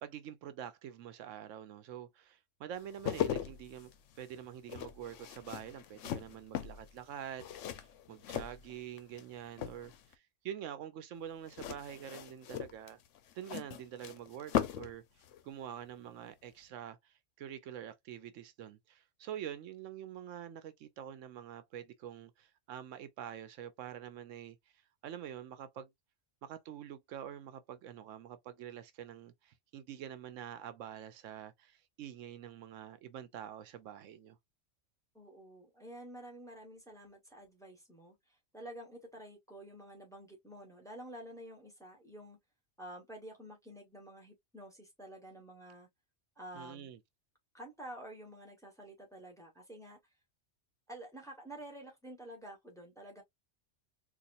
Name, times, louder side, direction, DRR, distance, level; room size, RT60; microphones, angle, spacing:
voice 1, 0.0-3.9 4.2-13.0 13.3-15.0 15.4-24.6 25.0-25.9 26.4-34.4 46.5-47.0, right 10 dB, 85° right, 1.0 m, -46 dB
sound 1, 2.8-9.2 9.5-10.1 11.5-15.0 15.2-15.4, left 10 dB, 80° left, 1.0 m, -39 dB
voice 2, 35.1-42.4 42.8-45.9 46.4-46.9 47.5-50.0 50.9-53.2, right 1 dB, 5° left, 1.2 m, -50 dB
4.1 x 2.5 x 2.5 m
omnidirectional pair, 1.3 m